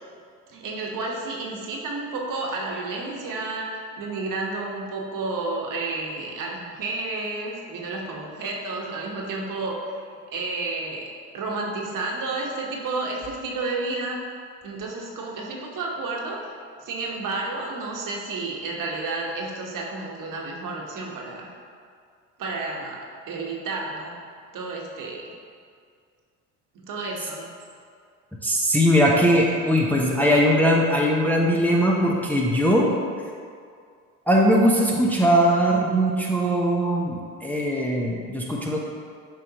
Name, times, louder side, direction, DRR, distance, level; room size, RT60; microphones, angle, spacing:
voice 1, 0.5-10.0 10.3-11.0 11.3-14.2 14.6-16.5 16.8-21.5 22.4-24.2 24.5-25.3 26.7-27.5, right 3 dB, 55° right, -1 dB, 1.3 m, -31 dB
voice 2, 28.4-32.9 34.3-38.8, equal, 5° left, -3 dB, 0.8 m, -20 dB
7.6 x 4.9 x 3.0 m, 2.2 s
hypercardioid pair, 75°, 39 cm